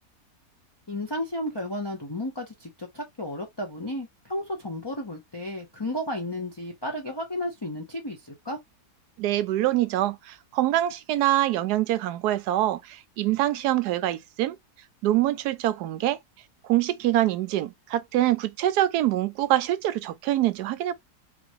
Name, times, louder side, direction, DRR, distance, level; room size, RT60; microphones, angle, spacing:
voice 1, 0.9-8.6, left 1 dB, 20° left, 0.7 m, -33 dB
voice 2, 9.2-14.6 15.0-16.2 16.6-20.9, right 14 dB, 80° right, 1.1 m, -25 dB
4.2 x 3.3 x 3.0 m
omnidirectional pair, 1.7 m